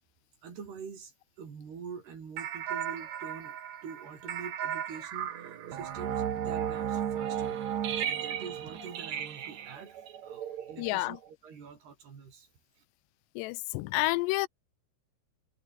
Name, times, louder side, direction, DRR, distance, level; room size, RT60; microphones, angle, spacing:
voice 1, 0.4-3.6 3.8-5.3 5.7-7.6 7.9-11.2 11.4-12.5, right 6 dB, 70° right, 6.7 m, -45 dB
sound 1, 2.4-11.3, right 9 dB, 50° right, 2.5 m, -35 dB
voice 2, 10.8-11.2 13.4-14.5, left 21 dB, 85° left, 2.8 m, -29 dB
omnidirectional pair, 4.8 m